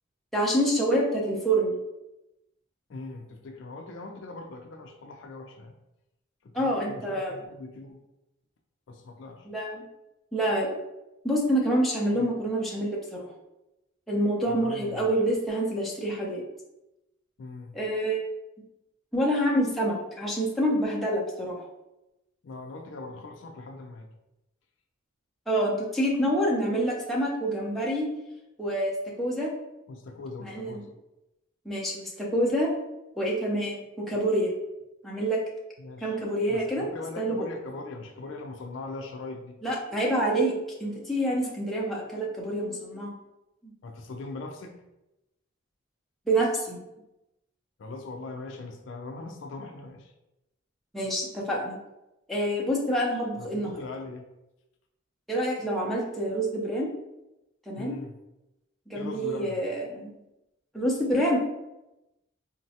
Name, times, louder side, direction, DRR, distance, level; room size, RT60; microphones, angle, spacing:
voice 1, 0.3-1.8 6.5-7.3 9.5-9.9 10.3-10.7 11.2-13.3 14.1-16.4 17.7-18.2 19.1-21.6 25.5-28.1 28.6-28.9 29.2-29.5 30.4-30.8 31.6-32.7 33.2-34.5 35.0-35.4 36.0-36.9 37.2-37.5 39.6-40.5 40.8-43.1 43.6-43.7 46.3-46.8 50.9-51.8 52.3-53.8 55.3-56.9 57.7-58.0 58.9-60.1 60.7-61.4, right 1 dB, ahead, -5 dB, 0.5 m, -27 dB
voice 2, 2.9-5.7 6.4-8.0 8.9-9.5 12.2-12.3 14.5-15.1 17.4-17.7 22.4-24.1 29.9-30.9 35.8-36.2 36.5-39.6 43.8-44.8 47.8-50.1 53.4-54.3 57.8-58.1 58.9-59.6, left 3 dB, 60° left, 3 dB, 0.4 m, -40 dB
3.8 x 2.2 x 2.7 m, 0.94 s
head